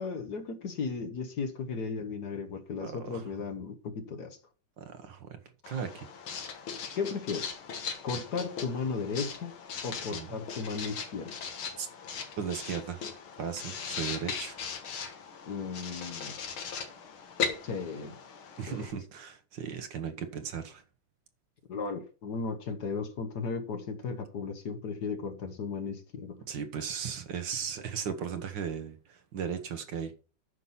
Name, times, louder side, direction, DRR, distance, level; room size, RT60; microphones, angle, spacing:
voice 1, 0.0-4.4 6.9-7.6 8.0-9.5 9.8-11.3 15.4-16.4 17.6-18.1 18.7-18.9 21.7-26.4, left 5 dB, 55° left, 1.5 m, -35 dB
voice 2, 2.8-3.2 4.8-5.4 5.7-6.1 10.1-10.4 11.7-11.9 12.4-13.1 13.4-14.6 18.6-20.8 26.5-30.1, right 7 dB, 65° right, 1.8 m, -36 dB
Writing, 5.6-18.9, left 6 dB, 85° left, 2.3 m, -39 dB
9.6 x 6.1 x 5.7 m
omnidirectional pair, 2.2 m